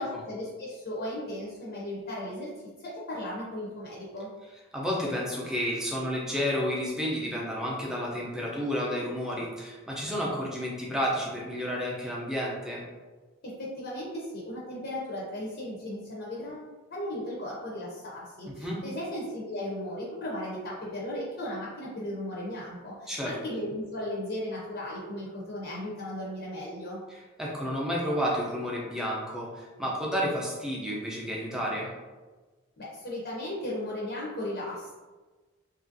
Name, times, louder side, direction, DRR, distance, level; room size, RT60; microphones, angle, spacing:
voice 1, 0.0-4.3 13.4-27.0 32.8-34.9, left 1 dB, 50° left, -5 dB, 0.6 m, -36 dB
voice 2, 4.7-12.8 18.6-18.8 23.1-23.3 27.1-31.9, equal, 5° right, -4 dB, 0.5 m, -31 dB
2.8 x 2.4 x 2.6 m, 1.3 s
head